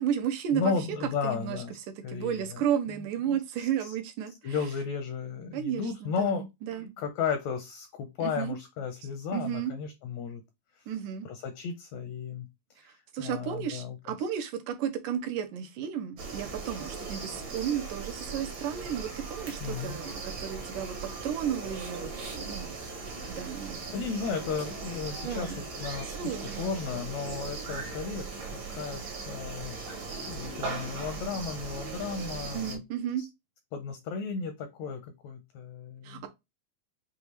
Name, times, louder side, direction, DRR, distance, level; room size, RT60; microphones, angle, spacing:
voice 1, 0.0-0.7 1.2-4.6 5.5-6.9 8.2-8.6 9.3-9.7 10.9-11.3 12.8-21.0 21.2-22.9 23.3-23.8 25.2-25.7 26.1-26.7 30.5-30.8 32.5-33.3 36.0-36.3, right 9 dB, 75° right, 2.3 m, -33 dB
voice 2, 0.5-1.7 2.0-2.6 3.3-3.4 3.8-3.9 4.4-6.4 6.7-10.4 11.3-12.5 12.8-14.1 19.6-20.0 23.9-25.5 25.8-28.3 28.7-32.8 33.2-33.3 33.7-36.3, left 5 dB, 80° left, 1.6 m, -34 dB
sound 1, 16.2-32.8, right 4 dB, 55° right, 1.3 m, -38 dB
6.9 x 2.4 x 3.1 m
omnidirectional pair, 3.9 m